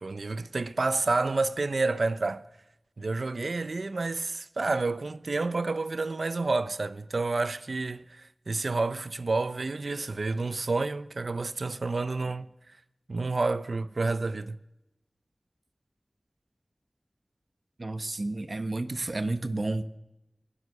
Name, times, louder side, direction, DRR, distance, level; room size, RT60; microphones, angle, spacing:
voice 1, 0.0-2.5 3.0-12.5 13.1-14.6, right 3 dB, 85° right, 0.8 m, -29 dB
voice 2, 17.8-19.9, right 2 dB, 60° right, 1.3 m, -31 dB
24.5 x 18.0 x 6.8 m
wide cardioid pair, 55°, 0 cm